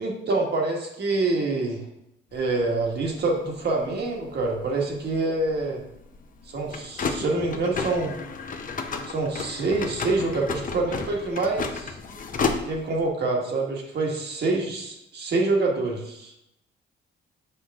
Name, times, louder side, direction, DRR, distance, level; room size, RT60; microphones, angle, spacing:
voice 1, 0.0-1.8 2.3-5.8 6.5-8.1 9.0-12.0 12.6-16.3, right 3 dB, 55° right, 0 dB, 1.6 m, -26 dB
sound 1, 2.3-13.1, left 4 dB, 45° left, 0.8 m, -33 dB
7.3 x 4.7 x 3.6 m, 0.84 s
cardioid pair, 90°, 20 cm